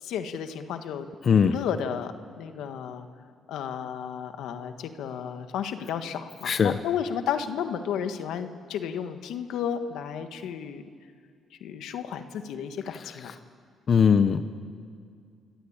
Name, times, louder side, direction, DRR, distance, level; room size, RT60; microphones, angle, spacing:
voice 1, 0.0-3.1 3.5-10.8 11.6-13.4, left 8 dB, 85° left, 8 dB, 1.6 m, -33 dB
voice 2, 13.9-14.4, left 6 dB, 50° left, 10 dB, 0.9 m, -19 dB
28.5 x 22.5 x 8.8 m, 2.1 s
cardioid pair, 90°, 0 cm